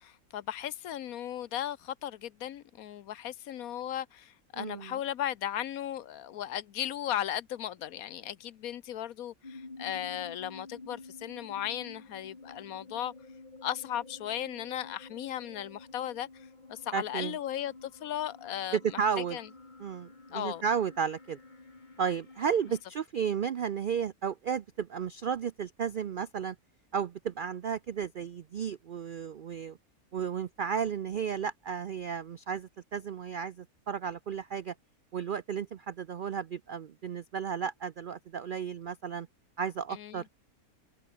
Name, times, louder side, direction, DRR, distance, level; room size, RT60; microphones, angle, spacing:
voice 1, 0.0-13.1 13.6-19.0 19.3-19.5 20.3-20.6 39.9-40.2, left 11 dB, 75° left, 1.2 m, -36 dB
voice 2, 4.6-5.0 16.9-17.4 18.7-19.4 19.8-21.4 22.0-26.6 26.9-29.8 30.1-34.7 35.1-39.3 39.6-40.3, right 7 dB, 70° right, 0.5 m, -33 dB
sound 1, 9.4-22.8, left 3 dB, 30° left, 2.4 m, -51 dB
omnidirectional pair, 1.6 m